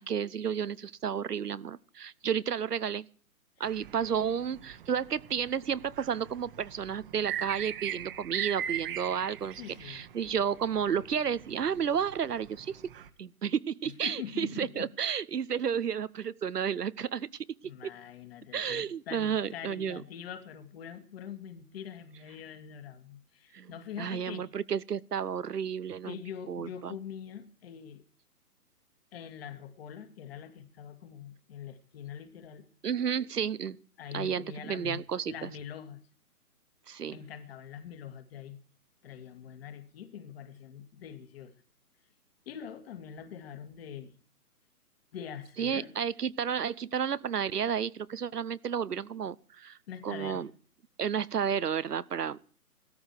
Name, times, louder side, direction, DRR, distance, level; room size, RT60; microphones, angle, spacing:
voice 1, 0.0-3.1 3.6-12.8 13.2-17.3 18.5-20.0 23.5-23.7 24.0-26.2 26.5-27.0 32.8-33.8 34.1-35.5 36.9-37.2 45.6-49.8 50.0-50.5 51.0-52.5, right 7 dB, 80° right, 17 dB, 1.0 m, -32 dB
sound 1, 3.6-13.1, right 10 dB, 35° right, 1.3 m, -41 dB
voice 2, 9.6-10.0 14.0-14.9 17.6-24.5 26.0-28.0 29.1-32.7 34.0-36.0 37.1-38.6 39.0-41.5 42.5-44.1 45.1-45.9 49.9-50.5, left 8 dB, 40° left, 8 dB, 2.5 m, -44 dB
17.0 x 13.5 x 4.7 m, 0.43 s
hypercardioid pair, 145°, 46 cm